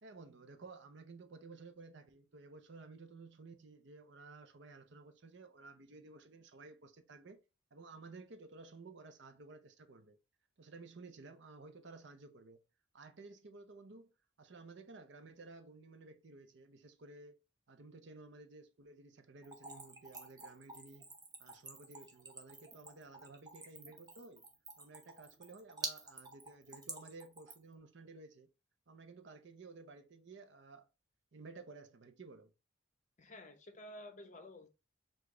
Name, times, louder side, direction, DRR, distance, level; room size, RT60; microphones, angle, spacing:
voice 1, 0.0-7.4 7.7-10.2 10.6-12.6 12.9-17.3 17.7-21.1 21.4-24.5 24.8-28.5 28.9-30.9 31.3-32.5, right 3 dB, 55° right, 0.6 m, -54 dB
Splash splatter / Trickle dribble, 19.4-27.7, right 3 dB, 20° right, 0.7 m, -49 dB
voice 2, 33.2-34.7, left 1 dB, 35° left, 0.7 m, -52 dB
4.9 x 2.4 x 3.6 m
head